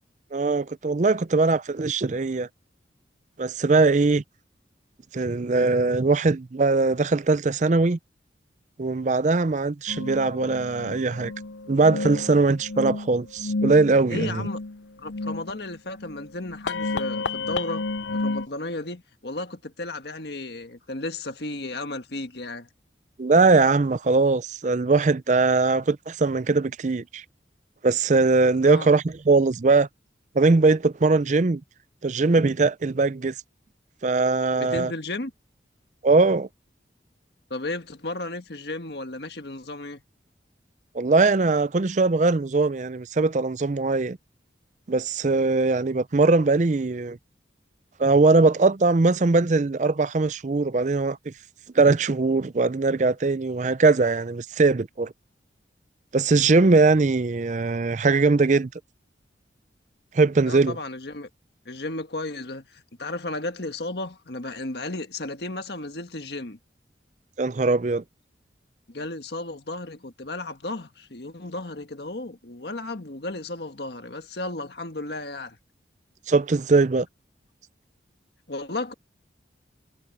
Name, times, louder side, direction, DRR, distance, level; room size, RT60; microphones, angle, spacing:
voice 1, 0.3-2.5 3.4-4.2 5.1-8.0 8.8-11.3 11.7-14.5 23.2-27.2 27.8-29.9 30.3-31.6 32.0-33.3 34.0-34.9 36.0-36.5 40.9-44.2 44.9-47.2 48.0-51.3 51.8-55.1 56.1-58.7 60.1-60.8 67.4-68.0 76.3-77.1, right 3 dB, 40° right, 0.5 m, -21 dB
sound 1, 9.9-18.5, left 3 dB, 90° left, 0.6 m, -32 dB
voice 2, 14.1-14.6 15.0-17.8 18.1-22.7 28.6-28.9 34.6-35.3 37.5-40.0 60.5-61.3 61.6-66.6 68.9-75.6 78.5-78.9, left 2 dB, 65° left, 1.6 m, -34 dB
head